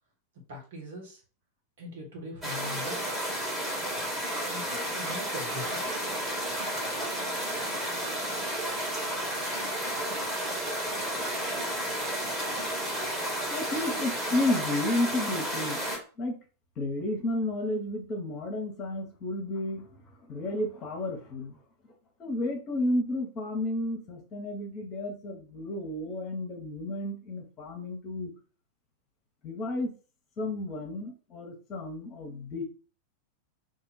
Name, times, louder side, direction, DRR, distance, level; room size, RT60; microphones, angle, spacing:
voice 1, 0.5-1.2 1.8-3.1 4.5-6.2, left 2 dB, 55° right, 0 dB, 1.5 m, -42 dB
sound 1, 2.4-16.0, right 1 dB, 10° right, 1.6 m, -32 dB
voice 2, 13.5-15.8 16.2-16.4 16.8-21.6 21.8-21.9 22.2-28.3 29.4-29.9 30.4-32.6, left 1 dB, 35° left, 2 dB, 1.1 m, -32 dB
2.8 x 2.6 x 4.2 m, 0.37 s
figure-of-eight pair, 90°, 0 cm